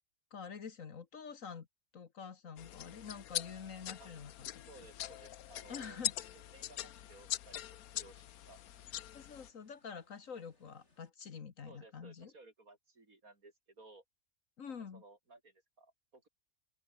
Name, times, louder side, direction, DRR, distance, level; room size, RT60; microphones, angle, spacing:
voice 1, 0.3-1.7 1.9-4.9 5.7-6.1 9.1-12.3 14.6-15.0, left 6 dB, 65° left, 1.8 m, -47 dB
sound 1, 2.6-9.5, left 12 dB, 90° left, 1.2 m, -43 dB
sound 2, 3.5-11.1, left 2 dB, 50° left, 4.2 m, -74 dB
voice 2, 4.7-6.0 6.3-8.6 11.7-14.0 14.9-16.3, right 2 dB, 80° right, 4.7 m, -59 dB
open air
omnidirectional pair, 1.5 m